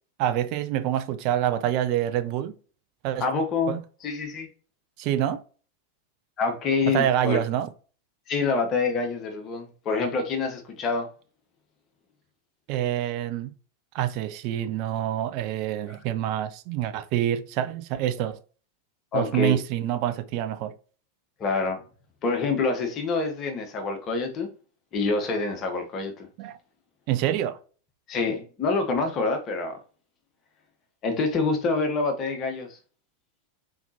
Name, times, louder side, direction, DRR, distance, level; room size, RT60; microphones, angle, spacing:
voice 1, 0.2-2.5 3.0-3.3 3.7-3.8 5.0-5.4 6.9-7.7 12.7-13.5 13.9-18.4 19.1-20.7 26.4-26.6 27.1-27.6, right 11 dB, 45° right, 0.5 m, -26 dB
voice 2, 3.2-4.5 6.4-7.4 8.3-11.1 19.1-19.6 21.4-21.8 22.2-24.5 24.9-26.3 28.1-29.8 31.0-32.8, left 4 dB, 30° left, 1.0 m, -26 dB
4.2 x 4.0 x 2.8 m
figure-of-eight pair, 90°, 0 cm